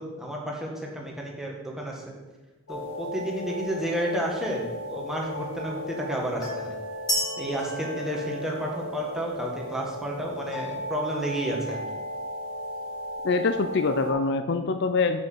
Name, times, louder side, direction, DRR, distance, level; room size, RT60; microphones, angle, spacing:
voice 1, 0.0-2.0 2.7-6.8 7.4-11.8, equal, ahead, -2 dB, 1.7 m, -31 dB
sound 1, 2.7-14.1, left 1 dB, 80° left, 2.0 m, -35 dB
sound 2, 7.1-9.0, equal, 20° left, 1.4 m, -31 dB
voice 2, 13.2-15.2, left 4 dB, 55° left, 9 dB, 0.5 m, -24 dB
7.6 x 7.2 x 6.1 m, 1.2 s
head